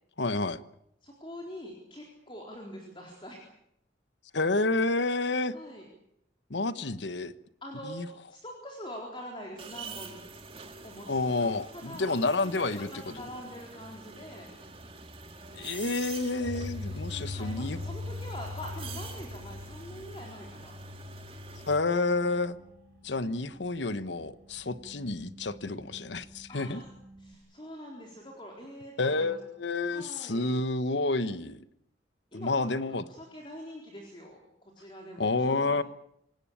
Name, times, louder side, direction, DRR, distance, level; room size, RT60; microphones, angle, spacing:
voice 1, 0.2-0.6 4.3-5.5 6.5-7.3 7.8-8.1 11.1-12.9 15.5-17.8 21.7-22.5 23.0-26.8 29.0-31.6 32.3-33.0 35.2-35.8, left 3 dB, 70° left, 14 dB, 1.1 m, -29 dB
voice 2, 1.0-3.5 5.5-5.8 7.6-10.2 10.8-12.1 12.4-14.5 16.8-20.7 26.5-29.4 29.8-30.5 32.3-32.6 32.9-35.8, equal, 25° left, 0 dB, 4.1 m, -44 dB
sound 1, 9.6-21.8, right 4 dB, 30° right, 2.3 m, -46 dB
sound 2, 16.4-27.3, left 2 dB, 70° right, 5.2 m, -43 dB
27.0 x 18.5 x 8.8 m, 0.78 s
head